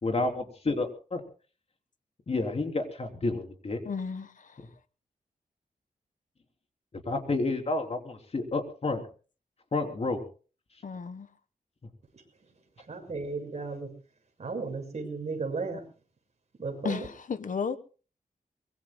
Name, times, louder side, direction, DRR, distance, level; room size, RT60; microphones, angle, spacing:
voice 1, 0.0-1.2 2.3-3.8 7.0-9.0 9.7-10.2, left 2 dB, 45° left, 3.4 m, -30 dB
voice 2, 3.8-4.3 10.8-11.3 16.8-17.8, left 5 dB, 60° left, 1.2 m, -33 dB
voice 3, 12.9-13.9 14.4-15.8 16.6-17.1, right 4 dB, 50° right, 6.6 m, -34 dB
24.5 x 22.5 x 2.2 m
wide cardioid pair, 145°, 15 cm